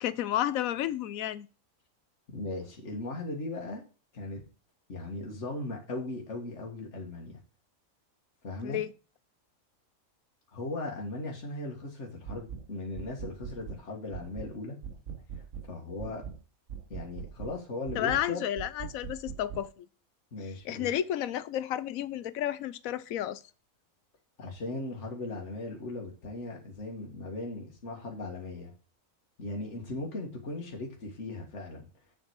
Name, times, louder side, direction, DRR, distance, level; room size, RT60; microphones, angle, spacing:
voice 1, 0.0-1.5 8.6-8.9 17.9-19.9 20.6-23.4, left 11 dB, 85° left, 1.1 m, -31 dB
voice 2, 2.3-3.8 4.1-4.4 4.9-7.4 8.4-8.8 10.5-14.8 15.7-16.2 16.9-18.4 20.3-20.9 24.4-28.7 29.4-31.9, left 2 dB, 55° left, 2.1 m, -38 dB
sound 1, 12.3-12.7 13.0-13.8 14.1-14.5 14.8-15.7 16.0-16.4 16.7-17.6 17.9-18.3 18.6-19.7, right 7 dB, 65° right, 1.4 m, -41 dB
7.0 x 5.8 x 4.7 m
omnidirectional pair, 1.4 m